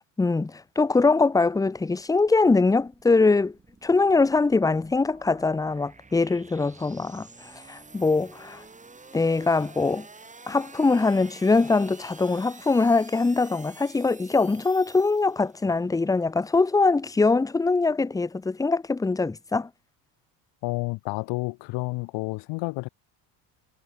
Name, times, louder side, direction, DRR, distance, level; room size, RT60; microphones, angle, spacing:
voice 1, 0.2-3.5 3.8-8.6 9.1-10.1 10.5-19.7, left 3 dB, 10° left, 0.7 m, -22 dB
sound 1, 1.8-15.8, right 3 dB, 15° right, 7.3 m, -50 dB
voice 2, 20.6-22.9, left 24 dB, 75° left, 1.0 m, -30 dB
cardioid pair, 115°, 43 cm